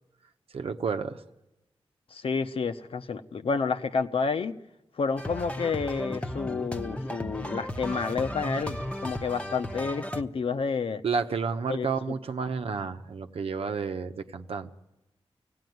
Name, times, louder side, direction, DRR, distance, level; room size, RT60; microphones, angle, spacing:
voice 1, 0.5-1.2 11.0-14.7, right 5 dB, 75° right, 7 dB, 1.0 m, -31 dB
voice 2, 2.1-4.6 5.0-11.0 11.7-11.9, left 5 dB, 65° left, 8 dB, 1.0 m, -30 dB
sound 1, 5.2-10.2, equal, 10° left, 1.0 m, -35 dB
25.5 x 17.0 x 9.5 m, 1.0 s
wide cardioid pair, 100°, 10 cm